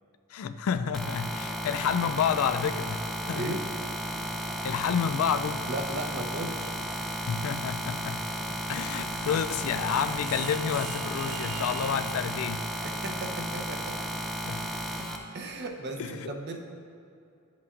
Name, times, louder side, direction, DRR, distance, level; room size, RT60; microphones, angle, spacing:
voice 1, 0.3-3.0 3.3-3.5 4.1-4.3 4.6-5.7 7.3-8.2 8.7-12.7 14.4-14.7 16.0-16.3, left 7 dB, 65° left, 11 dB, 0.3 m, -29 dB
sound 1, 0.9-15.2, equal, ahead, 0.5 m, -34 dB
voice 2, 3.3-3.7 5.7-6.7 9.0-9.1 13.0-14.0 15.0-15.1 15.3-16.6, right 2 dB, 50° right, 2 dB, 0.8 m, -36 dB
sound 2, 8.6-12.4, right 5 dB, 85° right, 0.5 m, -43 dB
11.0 x 8.2 x 2.5 m, 2.5 s
head